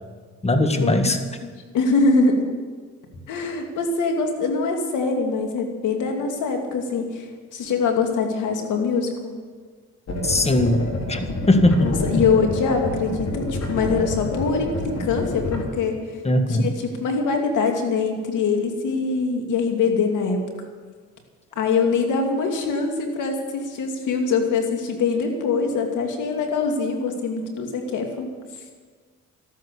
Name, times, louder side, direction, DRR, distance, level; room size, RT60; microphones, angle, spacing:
voice 1, 0.4-1.2 10.2-11.2 11.5-12.0 16.2-16.7, left 1 dB, 20° left, 7 dB, 1.5 m, -19 dB
voice 2, 1.7-2.5 3.3-9.3 11.8-16.2 16.5-20.4 21.6-28.3, left 4 dB, 85° left, 3 dB, 2.5 m, -23 dB
sound 1, 10.1-15.6, left 1 dB, 60° left, 3.4 m, -28 dB
13.0 x 12.5 x 6.9 m, 1.5 s
cardioid pair, 90°, 30 cm